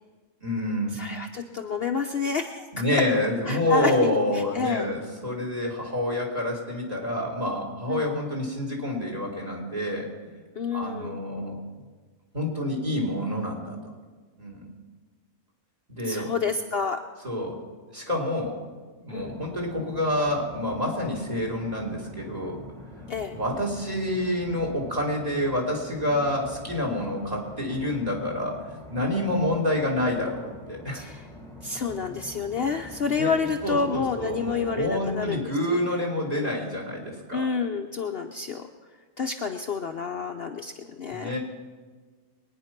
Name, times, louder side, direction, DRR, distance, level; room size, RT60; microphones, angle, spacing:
voice 1, 0.4-1.0 2.7-10.4 10.7-11.6 12.3-13.8 14.4-14.7 15.9-16.3 17.2-17.6 17.9-18.6 19.0-22.6 23.3-31.0 33.2-33.4 33.6-37.5 41.1-41.4, left 1 dB, 30° right, 0 dB, 3.2 m, -28 dB
voice 2, 0.9-3.0 3.5-3.9 4.5-4.8 7.9-8.0 10.6-11.2 16.1-17.0 19.1-19.3 23.1-23.3 30.9-31.2 31.6-36.0 36.3-36.5 37.3-38.6 39.2-40.7 41.0-41.4, left 5 dB, 55° left, 5 dB, 0.8 m, -29 dB
sound 1, 19.2-35.4, left 1 dB, ahead, 1.6 m, -45 dB
22.0 x 9.7 x 5.9 m, 1.4 s
omnidirectional pair, 1.4 m